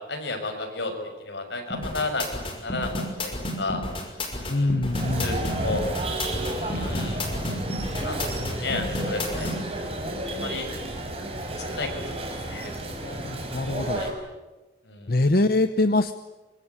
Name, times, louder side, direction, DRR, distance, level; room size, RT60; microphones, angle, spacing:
voice 1, 0.1-0.9 1.2-2.3 2.6-3.8 4.4-5.9 6.5-7.3 7.9-9.5 9.7-9.9 10.2-10.7 11.6-12.7 13.0-13.2 13.9-14.1 14.8-15.2, left 3 dB, 80° left, 4 dB, 6.8 m, -33 dB
sound 1, 1.7-9.6, left 1 dB, 30° left, 5.8 m, -31 dB
voice 2, 4.5-5.4 13.2-14.0 15.1-16.1, left 2 dB, 50° left, 10 dB, 0.9 m, -23 dB
sound 2, 4.9-14.1, right 1 dB, 30° right, 5.6 m, -31 dB
25.0 x 24.0 x 9.9 m, 1.2 s
head